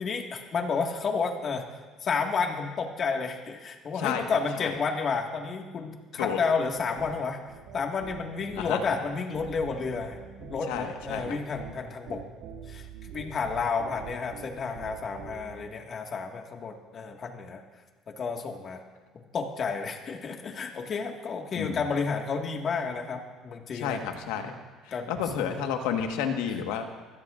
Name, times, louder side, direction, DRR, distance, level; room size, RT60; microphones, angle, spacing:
voice 1, 0.0-1.6 2.0-7.4 7.7-12.2 12.7-17.6 18.1-18.8 19.1-24.0 24.4-24.5 24.9-25.5, left 5 dB, 45° left, 2 dB, 1.8 m, -31 dB
voice 2, 4.0-4.7 6.2-6.4 8.6-8.8 10.7-11.4 21.5-21.8 23.7-24.5 24.8-26.9, left 8 dB, 90° left, 5 dB, 1.5 m, -31 dB
sound 1, 6.7-15.7, right 7 dB, 75° right, 2.0 m, -45 dB
25.5 x 16.0 x 2.6 m, 1.3 s
supercardioid pair, 90°, 0 cm